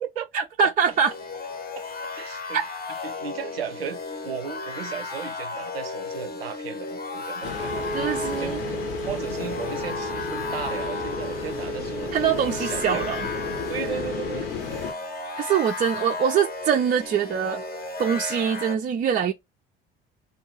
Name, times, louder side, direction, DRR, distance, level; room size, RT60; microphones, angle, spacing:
voice 1, 0.0-0.5 2.1-2.6 3.0-7.8 8.4-13.0 13.7-14.5, right 7 dB, 85° right, 0.5 m, -35 dB
voice 2, 0.6-1.1 2.5-2.6 7.9-8.6 12.1-13.3 15.4-17.6 18.0-19.3, right 7 dB, 30° right, 0.4 m, -23 dB
sound 1, 0.8-18.8, left 3 dB, 30° left, 0.7 m, -35 dB
sound 2, 7.4-14.9, left 6 dB, 70° left, 0.8 m, -34 dB
Wind instrument woodwind instrument, 7.5-14.6, right 3 dB, ahead, 0.8 m, -35 dB
2.5 x 2.3 x 3.0 m
figure-of-eight pair, 55°, 29 cm